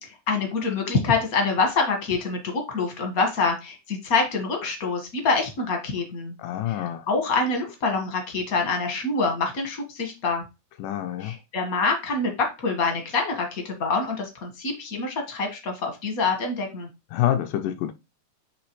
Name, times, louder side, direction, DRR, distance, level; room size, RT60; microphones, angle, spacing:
voice 1, 0.0-6.3 6.7-10.4 11.2-16.9, left 4 dB, 50° left, 1.1 m, -26 dB
voice 2, 6.4-7.1 10.8-11.4 17.1-17.9, left 12 dB, 80° left, 2.0 m, -27 dB
9.8 x 3.4 x 3.0 m
omnidirectional pair, 3.9 m